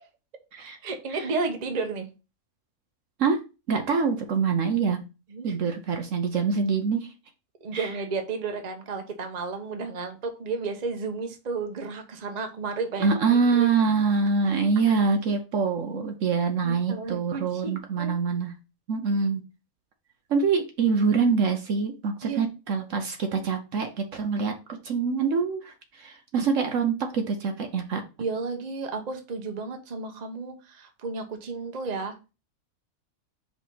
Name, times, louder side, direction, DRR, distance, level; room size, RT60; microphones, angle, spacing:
voice 1, 0.6-2.1 5.3-5.6 7.6-13.7 16.6-18.2 22.2-22.4 23.3-23.4 28.2-32.2, right 4 dB, 35° right, 5 dB, 0.9 m, -33 dB
voice 2, 3.7-5.0 5.4-7.1 7.7-7.9 13.0-18.5 18.9-19.4 20.3-24.5 24.8-28.0, right 5 dB, 60° right, 5 dB, 1.1 m, -25 dB
4.9 x 3.5 x 5.5 m, 0.30 s
omnidirectional pair, 1.5 m